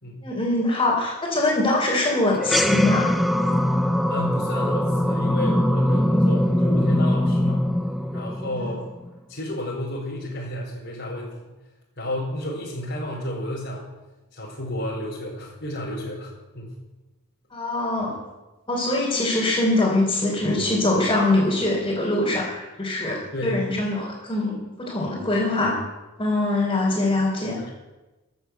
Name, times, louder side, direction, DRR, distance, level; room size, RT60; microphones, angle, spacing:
voice 1, 0.2-3.1 8.6-8.7 17.5-18.1 18.7-25.8 26.2-27.6, left 2 dB, 20° left, -7 dB, 3.8 m, -23 dB
sound 1, 2.4-9.1, left 1 dB, ahead, 0.5 m, -22 dB
voice 2, 3.7-7.7 8.1-8.8 9.3-11.5 12.0-13.8 14.3-16.8 23.3-23.7 27.5-27.7, left 1 dB, 55° left, -5 dB, 3.6 m, -31 dB
14.5 x 7.9 x 8.1 m, 1.1 s
head